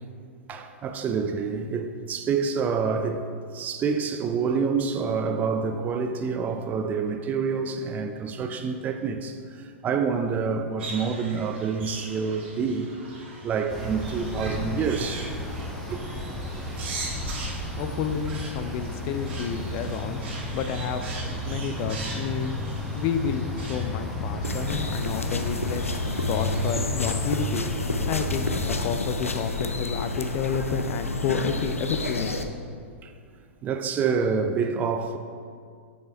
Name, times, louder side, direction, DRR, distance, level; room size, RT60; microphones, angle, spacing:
voice 1, 0.5-3.2 3.5-9.4 9.8-12.9 13.4-15.3 15.9-16.0 18.6-18.7 33.0-33.1 33.6-35.2, right 5 dB, 25° right, 0.4 m, -27 dB
sound 1, 10.8-26.8, right 3 dB, 55° right, 1.6 m, -41 dB
sound 2, 13.7-28.9, left 1 dB, 5° left, 1.0 m, -33 dB
voice 2, 17.8-20.2 20.5-22.5 22.9-25.9 26.3-27.6 28.1-32.4, left 7 dB, 40° left, 0.5 m, -30 dB
sound 3, 24.4-32.4, left 2 dB, 85° left, 0.5 m, -30 dB
6.6 x 5.3 x 4.5 m
figure-of-eight pair, 105°, 7 cm